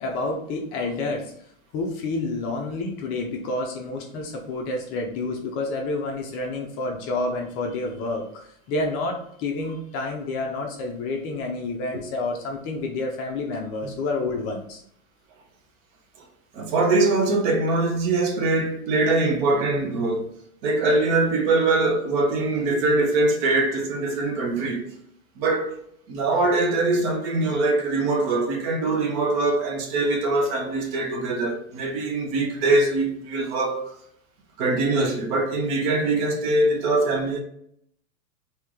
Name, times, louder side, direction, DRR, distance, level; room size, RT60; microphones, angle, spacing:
voice 1, 0.0-1.3 1.7-14.8, left 2 dB, 30° left, 0.6 m, -29 dB
voice 2, 16.5-20.3 20.6-24.9 25.4-25.8 26.1-33.9 34.6-37.4, right 2 dB, 45° right, 0.9 m, -23 dB
3.1 x 2.8 x 3.7 m
hypercardioid pair, 120°, 43 cm